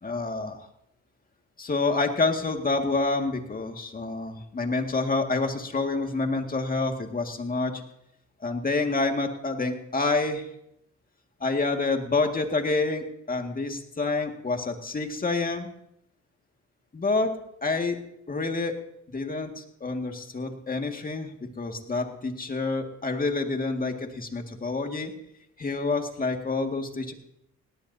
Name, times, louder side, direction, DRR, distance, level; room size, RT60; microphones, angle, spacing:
voice 1, 0.0-0.6 1.6-7.8 8.4-10.5 11.4-15.7 16.9-17.3 17.6-18.0 18.3-18.8 19.1-25.1 25.6-27.1, left 3 dB, 30° left, 4 dB, 2.1 m, -28 dB
18.5 x 17.5 x 2.8 m, 0.77 s
cardioid pair, 90°, 30 cm